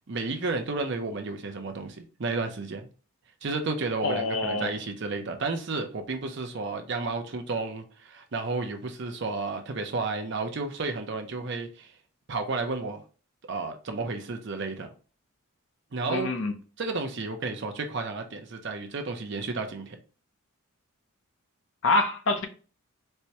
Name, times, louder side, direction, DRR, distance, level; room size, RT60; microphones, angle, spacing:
voice 1, 0.1-2.9 3.4-11.9 12.3-13.0 13.5-14.9 15.9-16.3 16.8-20.0, right 3 dB, 50° right, 0.6 m, -32 dB
voice 2, 4.0-4.7 16.1-16.5 21.8-22.5, left 2 dB, 55° left, 0.6 m, -26 dB
4.3 x 2.2 x 2.7 m
head